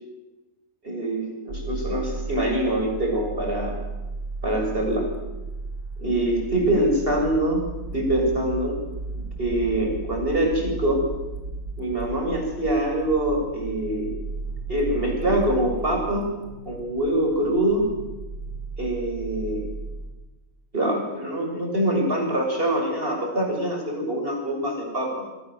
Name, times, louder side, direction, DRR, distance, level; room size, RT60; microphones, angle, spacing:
voice 1, 0.8-3.8 4.4-5.1 6.0-7.6 7.9-8.8 9.4-11.0 11.8-14.1 14.7-16.3 16.7-17.9 18.8-19.6 20.7-25.2, right 1 dB, 40° right, 1 dB, 7.5 m, -24 dB
sound 1, 1.5-20.1, right 3 dB, 85° right, 6.0 m, -35 dB
28.0 x 24.5 x 7.8 m, 1.1 s
omnidirectional pair, 1.5 m